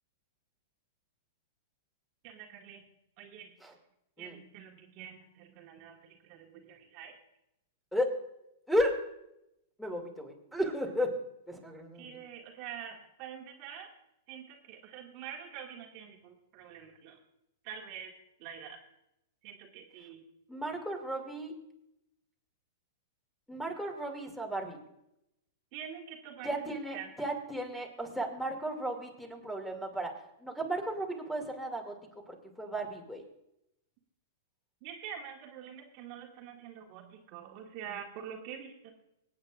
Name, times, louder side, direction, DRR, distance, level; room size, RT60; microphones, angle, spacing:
voice 1, 2.2-2.8 3.2-3.5 4.2-7.1 12.0-13.9 14.3-17.2 17.6-18.1 18.4-18.8 19.4-20.2 25.7-27.1 34.8-38.9, right 8 dB, 45° right, 1 dB, 1.8 m, -46 dB
voice 2, 8.7-9.0 9.8-11.2 11.5-12.2 20.5-21.5 23.5-24.8 26.4-30.1 30.4-32.0 32.3-33.2, equal, ahead, 3 dB, 2.5 m, -34 dB
25.0 x 8.6 x 2.5 m, 0.82 s
hypercardioid pair, 115°, 0 cm